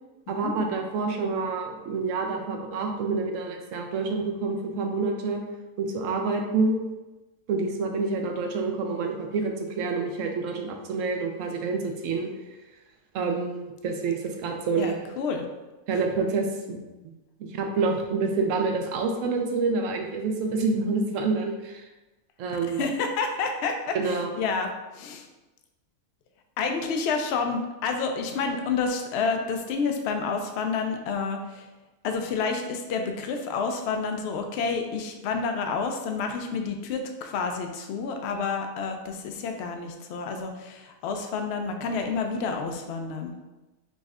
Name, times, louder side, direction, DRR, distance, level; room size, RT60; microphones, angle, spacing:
voice 1, 0.3-5.4 5.8-6.8 7.5-12.3 13.1-15.0 15.9-16.8 17.4-21.9 22.4-22.8 23.9-24.3, right 4 dB, 70° right, 3 dB, 0.9 m, -27 dB
voice 2, 14.8-15.5 15.9-16.0 22.8-24.7 24.9-25.3 26.6-31.6 32.0-43.3, left 4 dB, 65° left, 5 dB, 0.6 m, -29 dB
5.2 x 3.1 x 2.4 m, 1.1 s
omnidirectional pair, 1.5 m